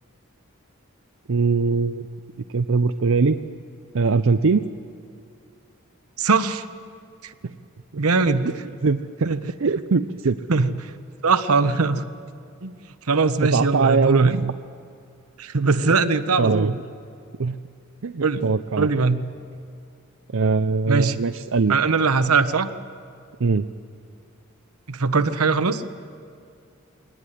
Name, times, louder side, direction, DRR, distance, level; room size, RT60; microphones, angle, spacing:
voice 1, 1.3-2.1 2.5-3.4 3.9-4.7 7.9-8.0 8.8-9.0 9.6-10.4 13.4-14.6 16.4-16.7 17.4-17.6 18.0-18.9 20.3-21.8 23.4-23.7, right 4 dB, 60° right, 9 dB, 0.5 m, -21 dB
voice 2, 6.2-6.7 7.2-7.3 8.0-8.5 9.2-9.4 10.5-10.9 11.2-12.0 12.6-12.8 13.0-14.3 15.4-16.8 18.2-18.5 18.8-19.2 20.9-21.2 21.7-22.7 24.9-25.8, right 4 dB, 80° right, 11 dB, 1.0 m, -21 dB
23.0 x 18.5 x 10.0 m, 2.4 s
head